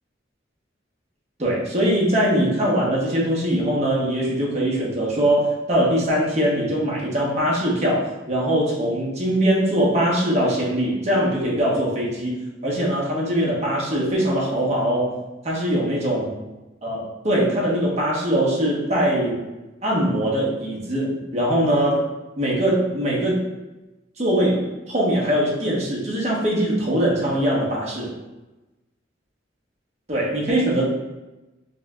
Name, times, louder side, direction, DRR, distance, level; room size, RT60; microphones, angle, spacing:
voice 1, 1.4-12.4 12.6-15.2 15.4-16.3 16.8-19.4 19.8-22.1 22.4-23.4 24.2-28.1 30.1-30.8, right 1 dB, 35° right, -4 dB, 1.0 m, -22 dB
5.3 x 2.7 x 2.3 m, 1.0 s
head